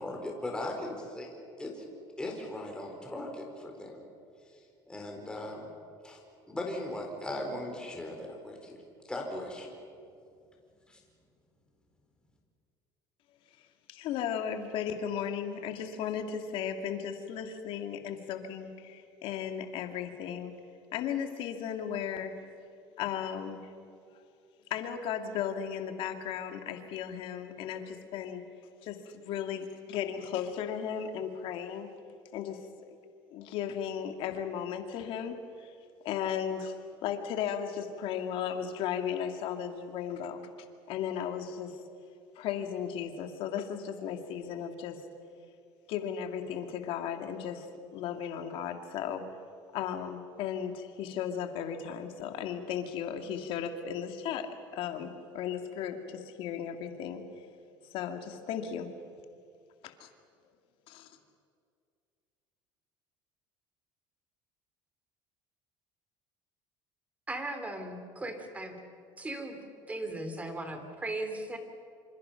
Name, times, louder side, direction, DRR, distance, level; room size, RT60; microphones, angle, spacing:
voice 1, 0.0-1.8 2.2-4.0 4.9-5.7 6.0-6.2 6.5-8.8 9.1-9.7 10.9-11.0, left 1 dB, 10° left, 0 dB, 4.4 m, -38 dB
voice 2, 13.9-20.5 20.9-22.3 22.6-22.7 22.9-23.7 24.1-24.2 24.7-28.4 28.8-31.9 32.3-32.9 33.3-35.7 36.0-36.8 37.0-40.5 40.9-41.8 42.4-45.0 45.9-49.2 49.7-57.2 57.9-58.9 59.8-60.1 60.9-61.1, left 8 dB, 65° left, 6 dB, 2.2 m, -35 dB
voice 3, 67.3-68.8 69.2-69.6 69.9-71.6, right 2 dB, 15° right, 6 dB, 3.2 m, -37 dB
26.5 x 26.5 x 5.8 m, 2.5 s
cardioid pair, 125°, 10 cm